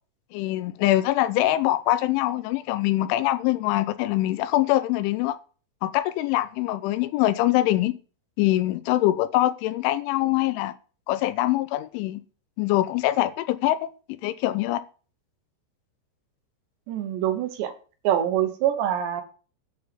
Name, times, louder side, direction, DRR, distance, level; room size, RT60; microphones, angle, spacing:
voice 1, 0.3-5.4 5.8-7.9 8.4-10.7 11.1-12.2 12.6-13.9 14.2-14.8, left 15 dB, 85° left, 3.1 m, -23 dB
voice 2, 16.9-17.7 18.0-19.2, right 11 dB, 70° right, 3.2 m, -25 dB
9.2 x 6.4 x 6.9 m
omnidirectional pair, 5.6 m